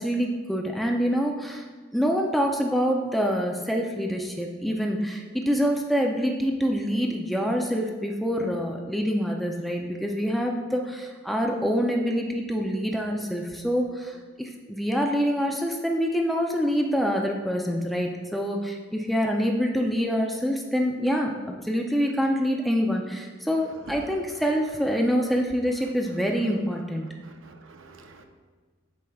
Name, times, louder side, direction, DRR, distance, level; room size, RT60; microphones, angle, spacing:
voice 1, 0.0-1.7 1.9-27.1, equal, ahead, 0 dB, 0.4 m, -26 dB
voice 2, 27.2-28.2, right 3 dB, 80° right, 5 dB, 0.7 m, -46 dB
8.2 x 5.8 x 2.3 m, 1.4 s
head